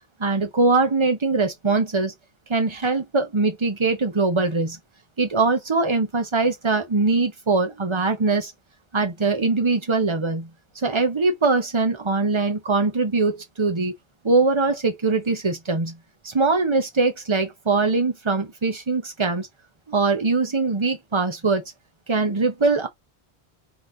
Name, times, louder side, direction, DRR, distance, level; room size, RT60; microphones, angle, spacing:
voice 1, 0.2-2.1 2.5-4.8 5.2-8.5 8.9-13.9 14.2-16.0 16.2-19.5 19.9-21.6 22.1-22.9, right 3 dB, 30° right, 0.9 m, -22 dB
3.8 x 3.1 x 3.9 m
omnidirectional pair, 1.1 m